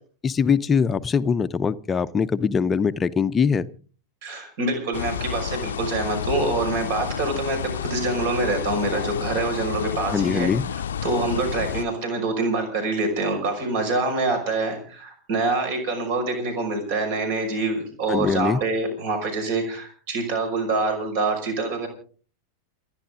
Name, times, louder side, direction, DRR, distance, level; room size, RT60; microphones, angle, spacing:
voice 1, 0.2-3.7 10.1-10.7 18.1-18.6, left 6 dB, 20° left, 0.7 m, -22 dB
voice 2, 4.2-10.5 11.0-21.9, right 3 dB, 50° right, 5.7 m, -25 dB
sound 1, 4.9-11.8, left 8 dB, 65° left, 0.7 m, -30 dB
28.5 x 10.5 x 3.8 m
figure-of-eight pair, 90°, 0 cm